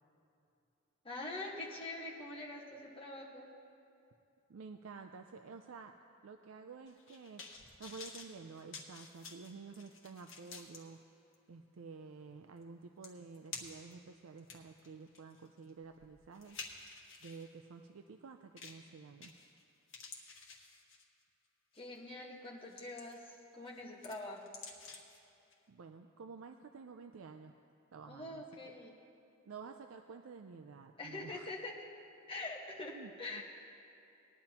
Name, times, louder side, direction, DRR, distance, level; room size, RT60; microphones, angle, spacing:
voice 1, 1.0-3.5 21.7-24.5 28.1-28.9 31.0-31.7 32.3-33.4, left 2 dB, 25° left, -3 dB, 1.4 m, -44 dB
voice 2, 4.5-5.9 6.2-11.0 11.5-16.6 17.2-19.3 25.7-27.5 27.9-28.7 29.5-31.5 32.9-33.4, right 4 dB, 75° right, 6 dB, 0.4 m, -51 dB
sound 1, 6.9-10.8 11.3-11.4 12.6-12.7 13.0-13.9 14.4-17.5 18.6-18.9 19.2-19.6 19.9-21.2 21.7-22.0 22.4-23.3 23.7-25.2 25.5-25.6, left 4 dB, 65° left, 1.3 m, -51 dB
19.5 x 10.5 x 2.9 m, 2.7 s
head